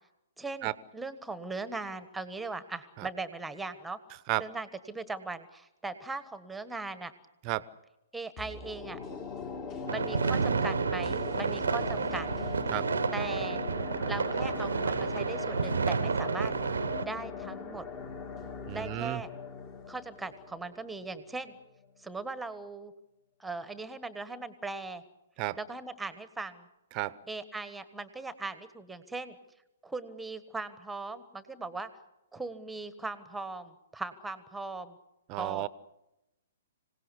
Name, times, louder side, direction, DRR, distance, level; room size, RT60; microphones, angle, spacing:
voice 1, 0.4-4.0 4.4-7.1 8.1-9.0 9.9-12.3 13.1-13.6 14.1-16.5 17.0-17.9 18.7-19.3 19.9-21.6 22.0-22.9 23.4-25.0 25.6-26.7 27.3-29.4 29.8-31.9 32.3-35.0 35.3-35.7, right 3 dB, 5° right, 12 dB, 1.4 m, -39 dB
sound 1, 8.4-21.5 21.8-21.9, left 5 dB, 30° left, 2.8 m, -40 dB
sound 2, 9.9-17.0, right 5 dB, 75° right, 0.8 m, -30 dB
voice 2, 18.7-19.2 25.4-25.6 26.9-27.2 35.3-35.7, right 18 dB, 35° right, 17 dB, 0.9 m, -32 dB
26.0 x 17.5 x 8.3 m, 0.92 s
figure-of-eight pair, 120°, 0 cm